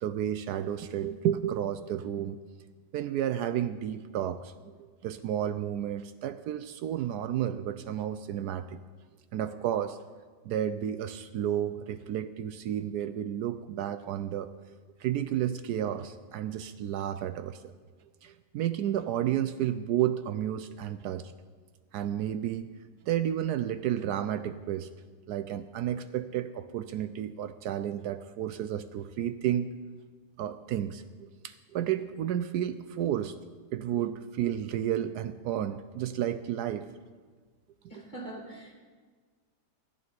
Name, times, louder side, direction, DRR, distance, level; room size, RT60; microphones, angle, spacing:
voice 1, 0.0-2.4 2.9-8.8 9.3-10.0 10.4-14.5 15.0-17.7 18.2-21.3 21.9-22.7 23.0-24.9 25.3-29.7 30.4-33.3 33.7-36.9, right 10 dB, 75° right, 11 dB, 1.1 m, -31 dB
voice 2, 37.9-38.7, right 2 dB, 25° left, 1 dB, 1.9 m, -42 dB
12.0 x 6.9 x 9.4 m, 1.5 s
omnidirectional pair, 1.8 m